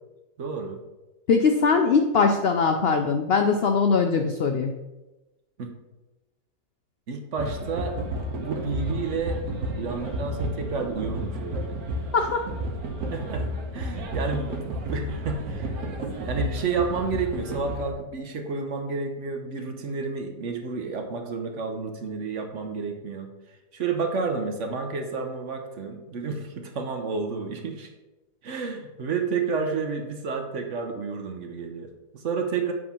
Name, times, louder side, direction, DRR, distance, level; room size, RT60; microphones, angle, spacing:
voice 1, 0.4-0.8 5.6-5.7 7.1-8.0 8.3-9.4 9.8-11.8 13.1-13.5 13.7-27.9 28.4-32.7, right 4 dB, 55° right, 4 dB, 1.1 m, -31 dB
voice 2, 1.3-4.8 12.1-12.4, left 5 dB, 80° left, 5 dB, 0.5 m, -21 dB
sound 1, 7.4-17.9, right 1 dB, 70° right, 1.3 m, -32 dB
7.6 x 3.7 x 5.8 m, 1.0 s
omnidirectional pair, 1.7 m